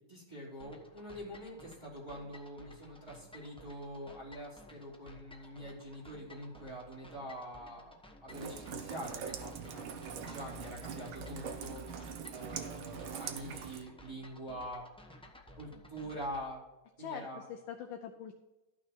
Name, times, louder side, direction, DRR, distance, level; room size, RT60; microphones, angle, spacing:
voice 1, 0.1-11.8 12.3-14.8 15.6-16.6 17.0-17.4, equal, 15° right, -3 dB, 3.2 m, -45 dB
sound 1, 0.6-16.5, left 1 dB, 10° left, 0.3 m, -56 dB
Rain, 8.3-13.8, right 7 dB, 80° right, 1.8 m, -43 dB
voice 2, 17.0-18.3, left 8 dB, 70° left, 5 dB, 1.4 m, -44 dB
13.0 x 6.0 x 4.5 m, 1.0 s
omnidirectional pair, 2.3 m